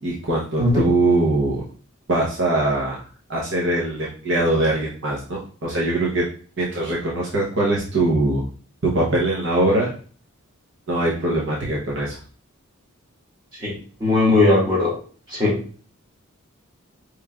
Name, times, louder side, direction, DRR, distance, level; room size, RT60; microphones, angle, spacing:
voice 1, 0.0-1.6 2.1-3.0 3.3-6.3 6.6-8.5 8.9-9.9 10.9-12.2, right 2 dB, 55° right, -4 dB, 0.8 m, -22 dB
voice 2, 14.0-14.9 15.4-15.5, left 2 dB, 25° right, -7 dB, 1.8 m, -17 dB
4.8 x 3.1 x 2.3 m, 0.42 s
head